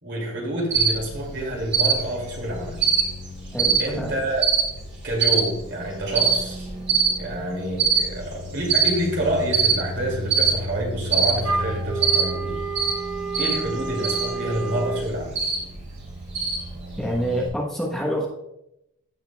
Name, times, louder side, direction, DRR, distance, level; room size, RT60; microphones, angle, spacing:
voice 1, 0.0-3.0 3.8-4.5 5.0-6.7 7.2-12.6 13.4-15.3, right 1 dB, 55° right, -1 dB, 2.6 m, -28 dB
Cricket, 0.7-17.5, right 6 dB, 35° right, 3.0 m, -25 dB
voice 2, 3.5-4.1 17.0-18.3, equal, ahead, -3 dB, 1.1 m, -26 dB
Wind instrument woodwind instrument, 11.4-15.1, right 4 dB, 70° right, 1.0 m, -30 dB
15.5 x 5.1 x 2.3 m, 0.86 s
head